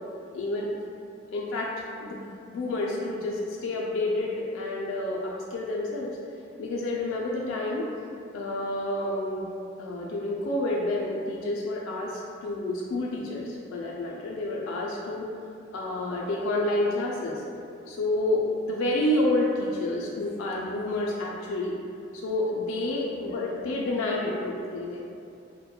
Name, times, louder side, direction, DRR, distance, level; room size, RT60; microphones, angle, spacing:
voice 1, 0.3-0.8 1.3-1.7 2.0-6.2 6.6-7.9 8.3-9.5 9.8-15.3 15.7-17.4 17.9-21.8 22.1-25.0, left 1 dB, 85° left, -2 dB, 0.3 m, -29 dB
2.9 x 2.1 x 2.2 m, 2.4 s
head